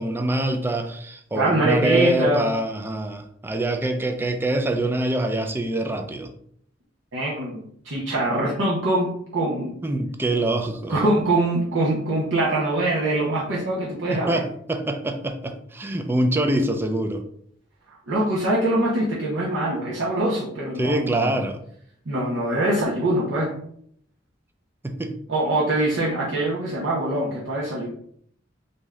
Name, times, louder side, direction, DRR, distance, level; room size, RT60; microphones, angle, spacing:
voice 1, 0.0-6.3 9.8-11.1 14.1-17.2 20.8-21.6 24.8-25.1, right 1 dB, 10° right, 6 dB, 0.3 m, -24 dB
voice 2, 1.3-2.5 7.1-9.8 10.9-14.4 18.1-21.4 22.1-23.5 25.3-27.9, right 1 dB, 70° right, -5 dB, 0.8 m, -23 dB
3.5 x 2.7 x 3.2 m, 0.66 s
head